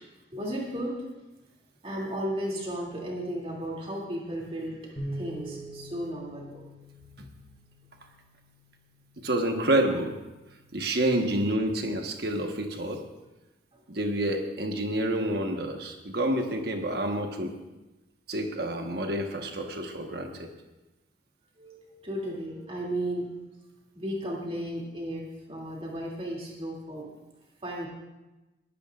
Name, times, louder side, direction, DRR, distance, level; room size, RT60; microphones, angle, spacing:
voice 1, 0.3-1.0 1.8-4.8 5.1-6.6 21.6-23.2 23.9-27.1 27.6-27.9, right 1 dB, 30° right, -3 dB, 2.7 m, -34 dB
sound 1, 5.0-11.2, right 1 dB, 35° left, 4.1 m, -44 dB
voice 2, 9.2-10.2 10.7-13.0 13.9-17.5 18.3-20.5, right 1 dB, 55° right, 3 dB, 1.3 m, -28 dB
22.0 x 12.0 x 2.5 m, 1.1 s
head